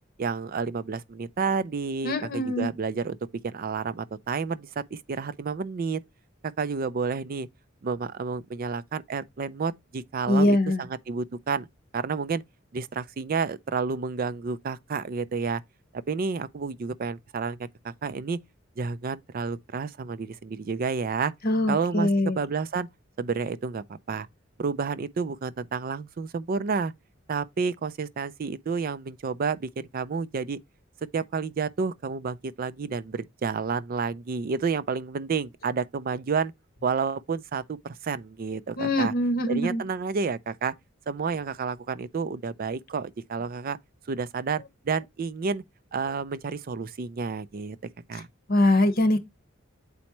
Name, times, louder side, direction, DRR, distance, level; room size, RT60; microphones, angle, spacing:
voice 1, 0.2-3.2 3.4-6.0 6.6-7.5 7.8-11.7 11.9-12.4 12.7-15.6 15.9-17.6 17.8-18.4 18.8-21.3 21.7-22.9 23.2-24.3 24.6-26.9 27.3-30.6 31.1-36.5 36.8-39.1 39.5-40.7 41.1-43.8 44.1-45.6 45.9-47.8 48.1-48.3, right 5 dB, 45° right, 0.4 m, -30 dB
voice 2, 2.0-2.7 10.3-10.8 21.4-22.4 38.8-39.8 48.5-49.2, left 1 dB, 50° left, 1.2 m, -23 dB
8.2 x 4.3 x 3.0 m
head